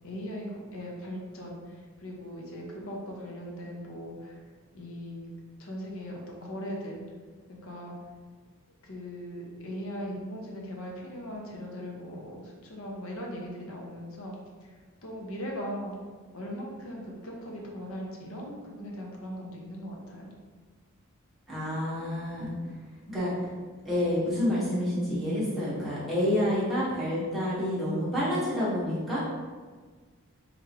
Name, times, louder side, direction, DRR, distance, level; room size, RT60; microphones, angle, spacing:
voice 1, 0.0-4.4 4.7-5.3 5.6-7.0 7.5-7.9 8.8-14.3 14.6-16.0 16.3-20.3, equal, 65° left, -1 dB, 0.9 m, -39 dB
voice 2, 21.5-22.5 23.1-23.5 23.8-29.2, left 1 dB, ahead, -11 dB, 1.3 m, -28 dB
3.6 x 3.6 x 3.1 m, 1.5 s
head